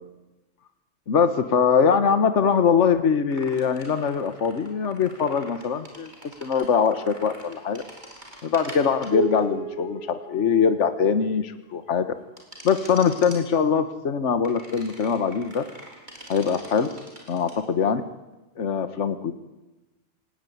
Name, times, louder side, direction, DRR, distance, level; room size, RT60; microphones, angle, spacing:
voice 1, 1.1-6.1 6.4-7.8 8.4-12.1 12.6-15.6 16.3-16.9 17.3-18.0 18.6-19.3, left 6 dB, 65° left, 10 dB, 1.5 m, -22 dB
sound 1, 3.3-11.1 12.4-13.4 14.5-17.6, right 3 dB, 35° right, 5.5 m, -39 dB
27.0 x 19.0 x 9.3 m, 1.1 s
omnidirectional pair, 1.3 m